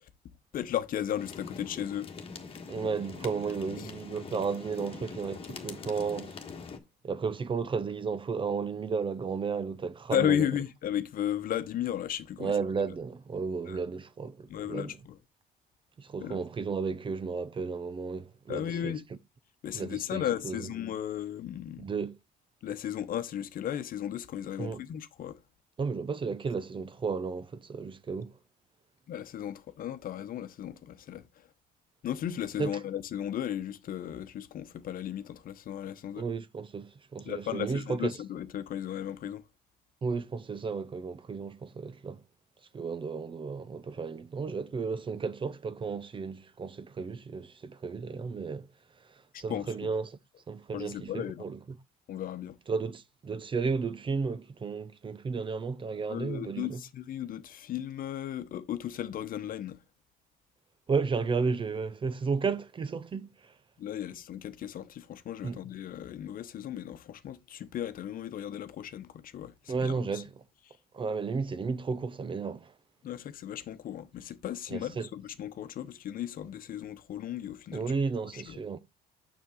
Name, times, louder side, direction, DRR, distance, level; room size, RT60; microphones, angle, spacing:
voice 1, 0.5-2.1 10.1-12.5 13.7-13.8 14.5-15.2 16.2-16.4 18.5-19.0 19.6-21.9 22.6-25.4 29.1-31.2 32.0-36.2 37.3-39.4 49.5-49.9 50.7-51.4 52.1-52.6 56.1-59.8 63.8-69.5 69.8-70.2 73.0-77.8 78.3-78.6, left 10 dB, 55° left, 1.0 m, -35 dB
sound 1, 1.2-6.8, left 5 dB, 35° left, 1.5 m, -43 dB
voice 2, 2.7-6.4 7.0-10.5 12.4-15.0 16.0-19.2 19.7-20.7 21.8-22.1 24.6-24.8 25.8-28.4 32.6-32.7 36.1-38.2 40.0-42.2 42.7-48.7 49.1-50.2 50.5-51.8 52.7-56.8 60.9-63.5 65.4-65.6 69.7-70.4 70.9-72.7 74.7-75.1 77.7-78.8, right 5 dB, 30° right, 0.7 m, -33 dB
6.9 x 6.1 x 3.8 m
cardioid pair, 110°, 17 cm